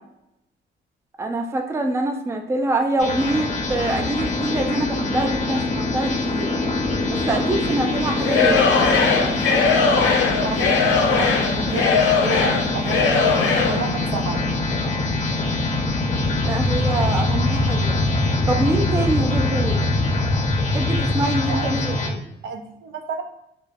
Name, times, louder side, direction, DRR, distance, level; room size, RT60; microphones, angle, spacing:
voice 1, 1.2-6.5 7.1-8.7 16.4-18.0 18.5-19.8 20.7-22.2, right 2 dB, 15° right, 4 dB, 0.3 m, -25 dB
sound 1, 3.0-22.1, left 2 dB, 35° left, 0.6 m, -23 dB
Singing / Crowd, 8.2-13.9, left 5 dB, 85° left, 0.4 m, -19 dB
voice 2, 9.8-11.4 11.7-14.4 21.5-23.2, right 4 dB, 75° right, 4 dB, 0.4 m, -31 dB
2.2 x 2.0 x 3.3 m, 0.84 s
cardioid pair, 90°, 20 cm